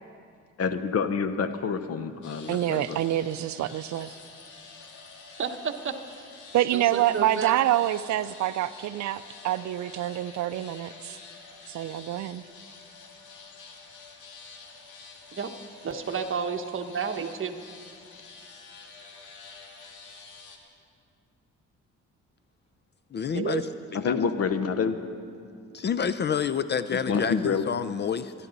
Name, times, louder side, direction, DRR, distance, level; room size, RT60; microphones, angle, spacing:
voice 1, 0.6-3.0 23.9-25.0 27.1-27.6, left 6 dB, 55° left, 10 dB, 1.0 m, -27 dB
sound 1, 2.2-20.6, left 4 dB, 80° left, 1.8 m, -48 dB
voice 2, 2.5-4.2 6.5-11.2 11.7-12.5, right 13 dB, 70° right, 15 dB, 0.5 m, -27 dB
voice 3, 5.4-6.3 6.7-7.6 15.3-15.5 15.8-17.6 23.3-23.6, right 6 dB, 45° right, 6 dB, 1.2 m, -31 dB
voice 4, 23.1-23.6 23.9-24.2 25.7-28.3, left 7 dB, 35° left, 13 dB, 0.4 m, -28 dB
24.5 x 11.0 x 4.0 m, 2.3 s
cardioid pair, 90°, 30 cm